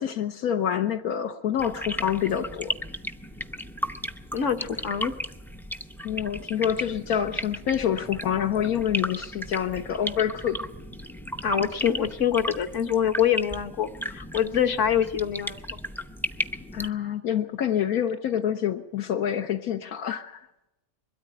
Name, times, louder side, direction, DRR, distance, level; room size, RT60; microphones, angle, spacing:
voice 1, 0.0-2.7 6.0-10.6 16.7-20.5, left 9 dB, 80° left, 5 dB, 1.4 m, -27 dB
sound 1, 1.6-16.9, equal, 5° left, 0.3 m, -35 dB
voice 2, 4.3-5.1 11.4-15.6, left 8 dB, 60° left, 7 dB, 1.3 m, -25 dB
22.0 x 13.5 x 9.0 m, 0.94 s
omnidirectional pair, 1.5 m